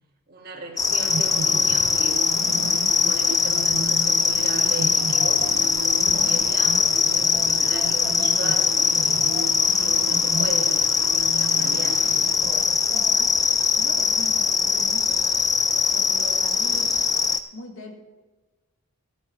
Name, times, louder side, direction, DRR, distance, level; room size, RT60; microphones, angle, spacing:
voice 1, 0.3-2.2 2.8-9.2 9.8-12.7, right 2 dB, 45° right, 0 dB, 2.0 m, -38 dB
sound 1, 0.8-17.4, left 6 dB, 15° left, 0.4 m, -21 dB
sound 2, 1.0-12.9, right 4 dB, 75° right, 0.7 m, -35 dB
voice 2, 12.9-15.3 15.9-17.0 17.5-17.9, equal, 60° left, 2 dB, 2.0 m, -41 dB
13.5 x 12.5 x 3.3 m, 1.2 s
head